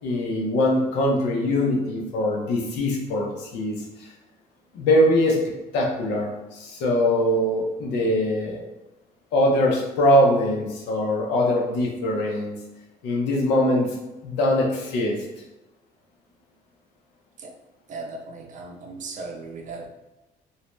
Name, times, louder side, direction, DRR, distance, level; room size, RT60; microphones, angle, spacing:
voice 1, 0.0-4.1 4.7-5.4 5.7-8.6 9.3-12.6 13.0-13.9 14.2-15.2, left 1 dB, 85° left, -1 dB, 0.7 m, -22 dB
voice 2, 17.9-19.9, right 3 dB, 45° right, 2 dB, 0.5 m, -37 dB
2.7 x 2.1 x 3.0 m, 1.0 s
cardioid pair, 110°, 17 cm